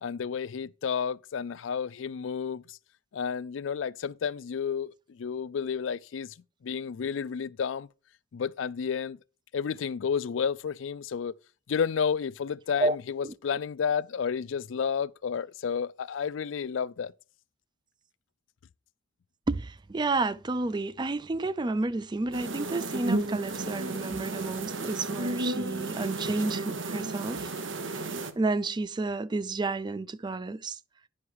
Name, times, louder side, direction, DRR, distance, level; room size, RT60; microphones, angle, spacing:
voice 1, 0.0-2.8 3.1-6.3 6.6-7.9 8.3-9.2 9.5-11.3 11.7-17.1, left 6 dB, 80° left, 0.4 m, -31 dB
voice 2, 13.2-13.6 19.5-27.5 27.8-28.0 28.4-30.8, right 3 dB, 25° right, 0.4 m, -31 dB
sound 1, 22.3-28.3, right 2 dB, 75° right, 1.0 m, -33 dB
9.9 x 5.7 x 4.7 m
head